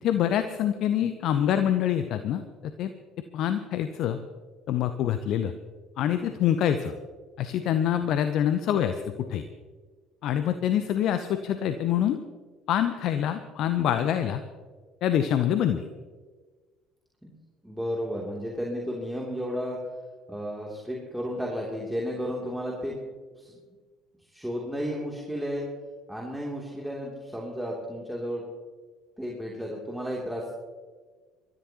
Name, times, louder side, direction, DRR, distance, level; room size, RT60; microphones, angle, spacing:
voice 1, 0.0-2.4 2.8-2.9 3.3-4.2 4.7-5.5 6.0-6.9 7.4-9.0 9.3-9.4 10.2-12.2 12.7-14.4 15.0-15.8, left 10 dB, 55° left, 10 dB, 0.7 m, -25 dB
voice 2, 17.6-19.8 20.3-23.0 23.4-23.6 24.3-25.6 26.1-28.4 29.2-30.5, equal, 5° right, -3 dB, 3.0 m, -33 dB
25.5 x 13.5 x 3.0 m, 1.4 s
figure-of-eight pair, 55°, 0 cm